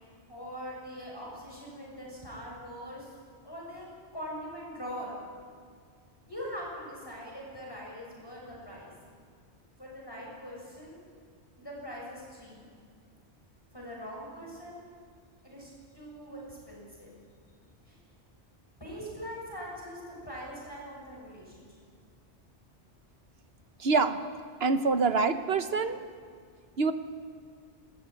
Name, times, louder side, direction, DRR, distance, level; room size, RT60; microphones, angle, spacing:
voice 1, 0.3-3.1 3.4-3.9 4.1-5.1 6.3-8.9 9.8-11.0 11.6-12.6 13.7-14.9 15.4-17.1 17.4-17.5 17.8-18.0 18.8-21.6, equal, 20° left, -4 dB, 6.7 m, -42 dB
voice 2, 23.8-24.2 24.6-26.0 26.8-26.9, right 4 dB, 65° right, 9 dB, 1.2 m, -25 dB
20.0 x 18.0 x 9.1 m, 2.1 s
omnidirectional pair, 1.2 m